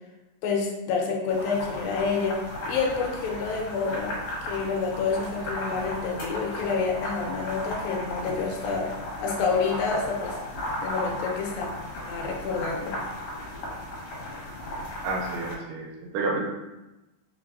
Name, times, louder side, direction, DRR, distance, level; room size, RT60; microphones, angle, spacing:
voice 1, 0.4-8.9 9.2-10.4 10.8-11.7 12.1-13.0, left 5 dB, 85° left, 0 dB, 2.6 m, -28 dB
sound 1, 1.3-15.5, left 1 dB, 60° left, 2.1 m, -35 dB
voice 2, 15.0-16.4, right 3 dB, 80° right, -1 dB, 2.1 m, -30 dB
4.6 x 4.2 x 2.5 m, 1.0 s
omnidirectional pair, 4.1 m